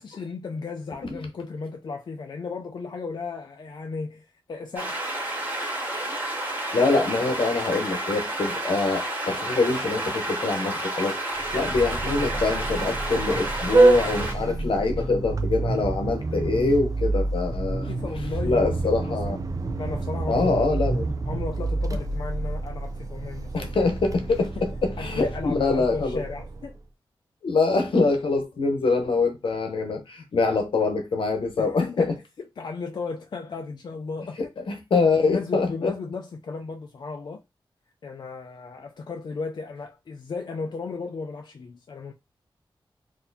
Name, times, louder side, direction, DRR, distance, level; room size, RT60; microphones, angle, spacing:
voice 1, 0.0-5.0 14.4-15.0 17.9-19.4 19.8-20.8 21.3-23.7 24.3-24.5 25.0-26.7 31.6-32.2 32.6-34.4 35.2-37.4 38.0-42.1, left 4 dB, 55° left, 0.4 m, -35 dB
sound 1, 4.8-14.3, right 1 dB, 20° right, 1.7 m, -30 dB
voice 2, 6.7-11.2 11.5-17.9 18.4-19.4 20.3-21.1 23.5-26.2 27.4-32.1 34.6-35.9, left 3 dB, 80° left, 0.8 m, -24 dB
Vehicle horn car horn honking, 11.4-26.8, right 2 dB, 40° right, 0.5 m, -27 dB
4.2 x 2.7 x 2.7 m
wide cardioid pair, 130°, 9 cm